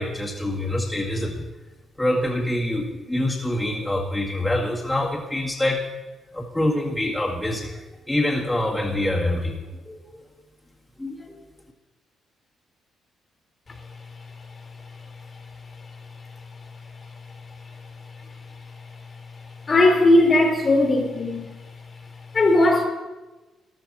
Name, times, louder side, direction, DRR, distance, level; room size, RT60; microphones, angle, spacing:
voice 1, 0.0-1.4 2.0-5.8 6.3-9.6 9.8-10.2 11.0-11.3, left 1 dB, 10° left, -3 dB, 2.2 m, -25 dB
voice 2, 19.7-21.4 22.3-22.8, left 2 dB, 35° left, 3 dB, 2.5 m, -17 dB
14.0 x 12.0 x 4.3 m, 1.1 s
cardioid pair, 90°, 0 cm